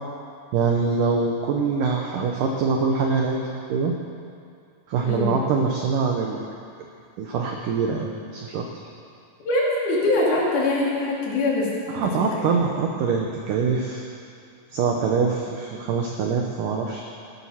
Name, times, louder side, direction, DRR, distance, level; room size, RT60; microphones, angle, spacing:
voice 1, 0.5-3.4 3.7-3.9 4.9-6.4 7.2-8.7 11.9-14.0 14.7-17.0, right 5 dB, 80° right, 1 dB, 1.9 m, -24 dB
voice 2, 9.4-11.7, left 2 dB, 60° left, -5 dB, 4.2 m, -22 dB
14.5 x 12.5 x 5.7 m, 2.4 s
omnidirectional pair, 5.1 m